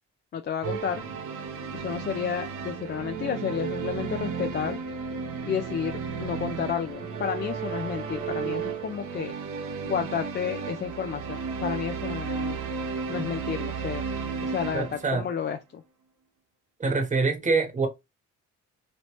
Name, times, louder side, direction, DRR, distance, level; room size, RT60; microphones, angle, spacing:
voice 1, 0.3-1.0 1.7-4.8 5.4-5.9 6.2-9.3 9.9-12.6 13.1-15.8, left 7 dB, 35° left, 0.4 m, -31 dB
sound 1, 0.6-15.4, right 6 dB, 80° right, 1.0 m, -33 dB
voice 2, 14.7-15.2 16.8-17.9, right 4 dB, 25° right, 1.1 m, -25 dB
3.1 x 2.8 x 3.0 m
cardioid pair, 90°, 30 cm